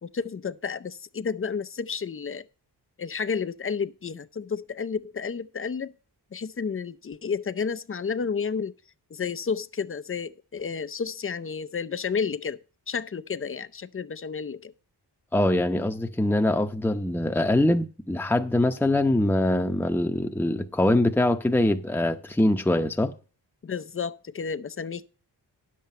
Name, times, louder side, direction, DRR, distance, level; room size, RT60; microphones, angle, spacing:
voice 1, 0.0-2.4 3.0-5.9 6.3-8.7 9.1-12.6 12.9-14.7 23.6-25.1, left 5 dB, 30° left, 0.6 m, -31 dB
voice 2, 15.3-23.1, left 1 dB, 5° left, 0.8 m, -23 dB
10.0 x 7.5 x 5.4 m
cardioid pair, 75°, 42 cm